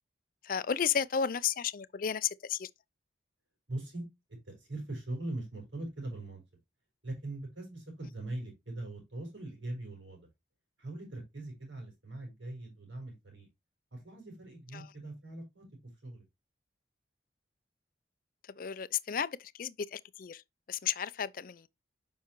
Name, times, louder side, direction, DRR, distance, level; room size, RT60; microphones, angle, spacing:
voice 1, 0.4-2.7 14.7-14.9 18.4-20.4 20.7-21.7, left 8 dB, 50° left, 0.4 m, -33 dB
voice 2, 3.7-4.1 4.5-6.4 7.0-10.3 10.8-13.5 13.9-16.2, right 2 dB, 85° right, 4.4 m, -41 dB
7.4 x 5.6 x 3.0 m
head